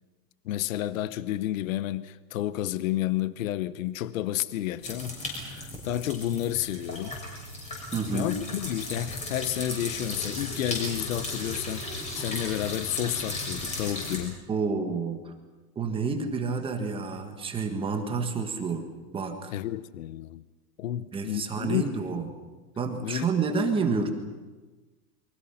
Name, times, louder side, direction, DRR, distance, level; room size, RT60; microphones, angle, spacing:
voice 1, 0.4-7.2 8.1-14.4 19.5-20.4 20.8-21.9 23.0-23.3, left 13 dB, 55° left, 1.0 m, -31 dB
sound 1, 4.8-14.2, left 2 dB, 15° left, 6.3 m, -36 dB
voice 2, 7.9-8.3 14.5-15.3 15.7-18.8 19.1-19.5 21.1-22.3 22.8-24.1, right 4 dB, 10° right, 1.5 m, -29 dB
29.0 x 24.0 x 5.8 m
supercardioid pair, 165°, 48 cm